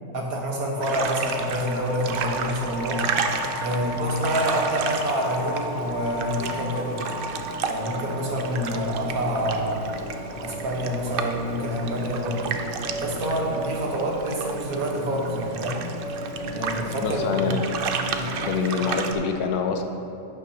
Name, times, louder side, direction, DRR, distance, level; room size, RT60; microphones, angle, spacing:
voice 1, 0.1-3.0 3.6-7.0 7.6-9.8 10.4-12.6 13.0-15.9 16.5-17.6 18.2-18.3, equal, 65° right, -1 dB, 1.7 m, -27 dB
sound 1, 0.7-19.3, left 1 dB, 50° left, 1.6 m, -35 dB
sound 2, 0.8-19.1, right 5 dB, 90° right, 0.4 m, -33 dB
voice 2, 17.0-17.7 18.4-19.8, left 6 dB, 80° left, 5 dB, 1.2 m, -26 dB
11.5 x 9.0 x 2.9 m, 2.7 s
omnidirectional pair, 1.6 m